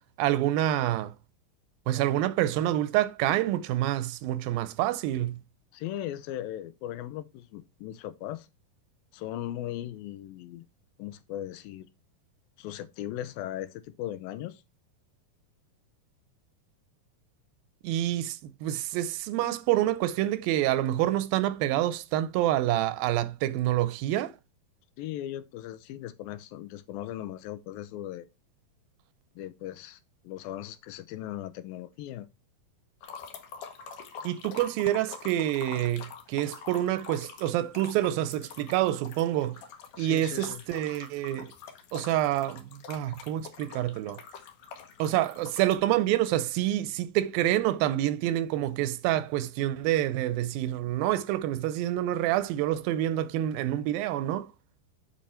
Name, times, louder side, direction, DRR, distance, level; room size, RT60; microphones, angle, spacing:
voice 1, 0.2-1.1 1.9-5.4 17.8-24.3 34.2-39.6 40.0-41.5 41.9-44.2 45.0-54.5, right 13 dB, 85° right, 2.4 m, -27 dB
voice 2, 5.7-8.5 9.1-10.7 11.0-11.9 12.6-14.6 25.0-28.3 29.4-30.0 30.2-32.3 40.0-40.6, left 12 dB, 85° left, 2.5 m, -38 dB
sound 1, 33.0-45.8, left 6 dB, 70° left, 2.4 m, -45 dB
7.5 x 5.3 x 4.3 m
omnidirectional pair, 4.1 m